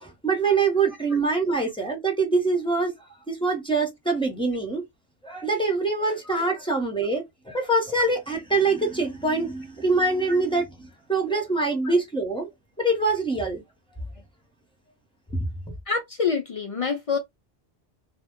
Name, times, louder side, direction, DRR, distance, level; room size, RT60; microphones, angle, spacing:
voice 1, 0.0-2.9 3.3-4.8 5.2-10.7 11.1-12.5 12.8-13.6, right 3 dB, 5° left, 0.8 m, -24 dB
voice 2, 1.5-2.0 6.2-6.4 10.3-10.4 11.8-12.0 15.9-17.2, left 5 dB, 65° left, 0.3 m, -28 dB
2.2 x 2.2 x 3.5 m
omnidirectional pair, 1.1 m